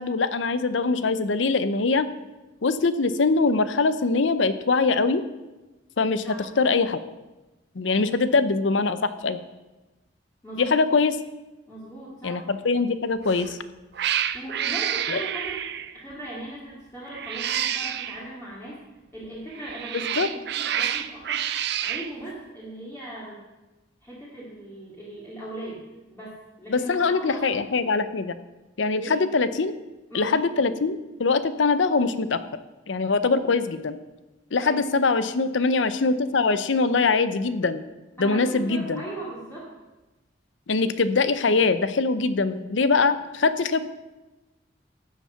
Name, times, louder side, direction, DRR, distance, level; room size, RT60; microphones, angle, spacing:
voice 1, 0.0-2.1 2.6-5.2 6.0-6.3 6.6-7.0 7.8-9.4 10.6-11.1 12.2-13.6 15.1-15.2 19.9-20.3 26.7-28.3 28.8-29.7 30.1-32.4 32.9-34.0 34.5-37.8 38.2-39.0 40.7-43.8, left 4 dB, 80° left, 13 dB, 0.7 m, -23 dB
voice 2, 10.4-10.8 11.7-12.4 14.2-15.6 15.9-18.8 19.1-23.4 24.0-27.5 29.0-29.2 30.1-30.4 34.6-34.9 38.2-39.7, right 1 dB, 15° left, -8 dB, 2.3 m, -38 dB
Cat, 13.2-13.5 14.0-16.0 17.1-18.2 19.5-22.1, right 10 dB, 60° right, 0.6 m, -28 dB
13.0 x 7.3 x 5.7 m, 1.1 s
head